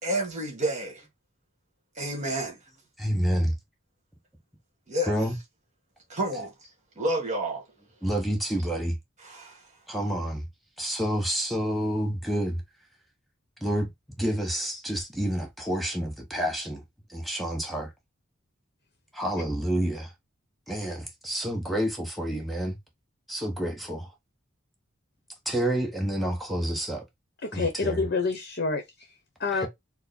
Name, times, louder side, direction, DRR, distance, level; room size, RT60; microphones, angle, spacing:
voice 1, 0.0-1.0 2.0-2.6 4.9-5.2 6.1-6.5 7.0-7.6 9.2-9.6, right 1 dB, 40° right, 1.9 m, -29 dB
voice 2, 3.0-3.5 5.1-5.4 8.0-9.0 9.9-10.5 10.8-12.6 13.6-13.9 14.2-16.8 17.1-17.9 19.1-20.1 20.7-22.8 23.3-24.1 25.4-27.0 27.5-28.0, equal, ahead, 1.0 m, -28 dB
voice 3, 27.4-29.1 29.4-29.7, left 4 dB, 55° left, 0.9 m, -28 dB
4.5 x 2.1 x 4.2 m
head